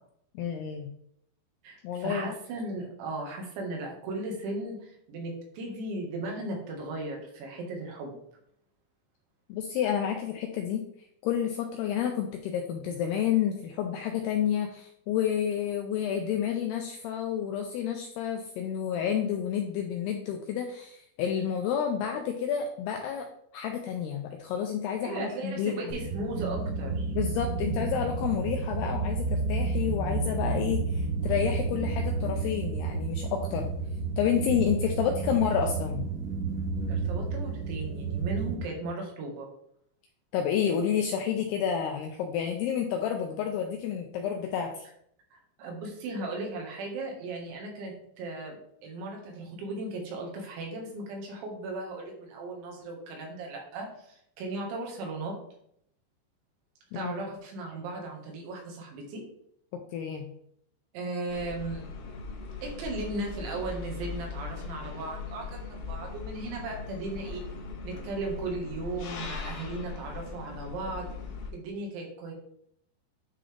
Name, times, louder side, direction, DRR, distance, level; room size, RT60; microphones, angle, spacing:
voice 1, 0.3-0.9 1.8-2.3 9.5-10.8 11.2-23.3 23.5-25.8 27.1-33.7 34.2-36.1 40.3-44.9 56.9-57.1 59.7-60.3, left 8 dB, 85° left, 3 dB, 2.3 m, -30 dB
voice 2, 1.6-8.2 25.0-27.1 36.9-39.5 45.3-55.3 56.9-59.2 60.9-61.9 62.6-67.4 67.8-71.1 71.5-72.3, right 2 dB, 80° right, 1 dB, 3.8 m, -36 dB
sound 1, 25.9-38.6, right 4 dB, 65° right, 2.1 m, -31 dB
sound 2, 61.3-71.5, left 4 dB, 70° left, 2.3 m, -39 dB
9.8 x 3.9 x 3.3 m, 0.70 s
omnidirectional pair, 5.2 m